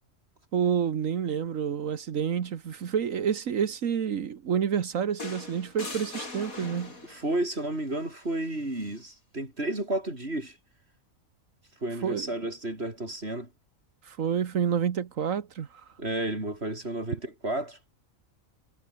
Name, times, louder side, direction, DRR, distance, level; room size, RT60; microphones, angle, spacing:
voice 1, 0.5-6.9 12.0-12.3 14.0-15.8, right 8 dB, 70° right, 1.5 m, -28 dB
sound 1, 5.2-7.3 8.7-9.0, left 2 dB, 85° left, 5.2 m, -40 dB
voice 2, 7.1-10.6 11.8-13.5 16.0-17.8, right 1 dB, 50° right, 6.4 m, -32 dB
omnidirectional pair, 1.4 m